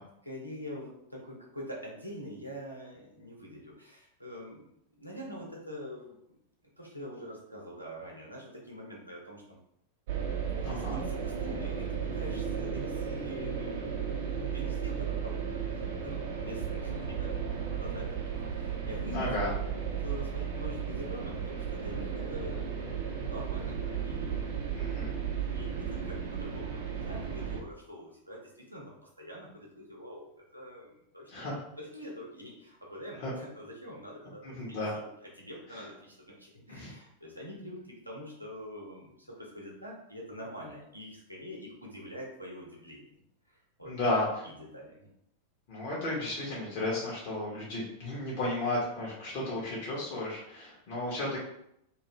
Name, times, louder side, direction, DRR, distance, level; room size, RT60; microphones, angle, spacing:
voice 1, 0.2-6.2 6.8-9.6 10.5-22.8 23.2-24.6 24.8-25.0 25.3-30.3 30.5-43.1 43.5-44.1 44.4-45.1, equal, 90° right, -3 dB, 0.7 m, -45 dB
sound 1, 10.1-27.6, right 7 dB, 55° right, 0.6 m, -34 dB
voice 2, 10.6-11.0 19.1-19.5 24.7-25.1 31.3-31.6 33.2-33.3 34.6-34.9 36.7-36.9 43.8-44.3 45.7-51.4, left 2 dB, 45° left, -6 dB, 0.9 m, -33 dB
2.6 x 2.5 x 3.1 m, 0.77 s
figure-of-eight pair, 90°, 0 cm